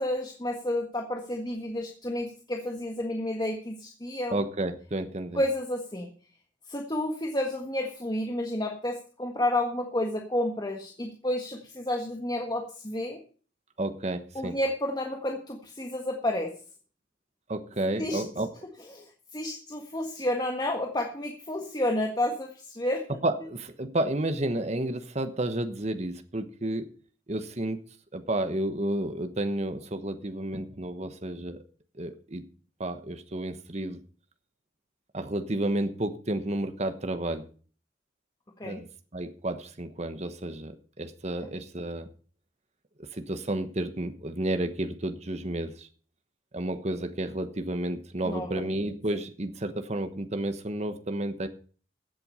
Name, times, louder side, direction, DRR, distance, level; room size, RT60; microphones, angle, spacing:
voice 1, 0.0-4.4 5.3-6.1 6.7-13.2 14.3-16.5 18.0-18.2 18.9-23.0 38.6-38.8 48.2-48.7, left 1 dB, 20° left, 2 dB, 1.5 m, -30 dB
voice 2, 4.3-5.4 13.8-14.6 17.5-18.5 23.2-26.9 27.3-27.8 28.1-31.6 32.0-32.4 32.8-34.0 35.1-37.5 38.6-38.9 39.1-42.1 43.0-45.9 46.5-51.5, right 1 dB, 35° right, 9 dB, 1.1 m, -31 dB
15.5 x 7.8 x 5.5 m, 0.41 s
head